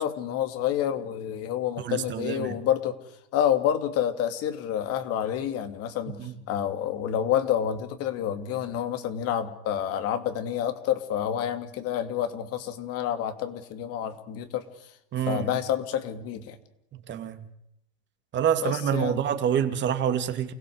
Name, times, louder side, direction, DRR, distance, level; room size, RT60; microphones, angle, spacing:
voice 1, 0.0-2.9 3.3-14.6 15.3-16.6 18.6-19.2, left 10 dB, 45° left, 2.9 m, -28 dB
voice 2, 1.8-2.6 6.2-6.3 15.1-15.6 16.9-17.4 18.3-20.5, right 9 dB, 35° right, 2.8 m, -27 dB
29.5 x 16.5 x 8.1 m
hypercardioid pair, 105°, 33 cm